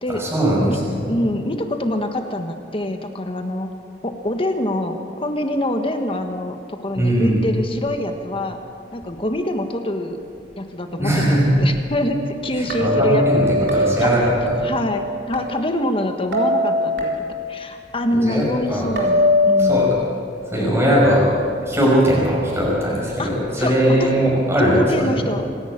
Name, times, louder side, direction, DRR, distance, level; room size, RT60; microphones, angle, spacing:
voice 1, 0.1-1.1 7.0-7.4 11.0-11.5 12.6-13.4 13.7-14.7 18.2-18.9 19.6-19.9 20.5-21.3 21.7-25.2, equal, 15° right, -4 dB, 5.4 m, -19 dB
voice 2, 1.1-3.7 4.0-8.6 8.9-10.2 10.6-14.1 14.6-20.0 20.6-21.0 23.2-23.3 23.6-23.7 24.0-24.1 24.6-25.5, left 1 dB, 30° left, 5 dB, 1.5 m, -25 dB
sound 1, 12.1-15.4 16.3-17.6 19.0-19.9, left 2 dB, 70° right, 4.0 m, -21 dB
26.0 x 11.5 x 8.9 m, 2.4 s
head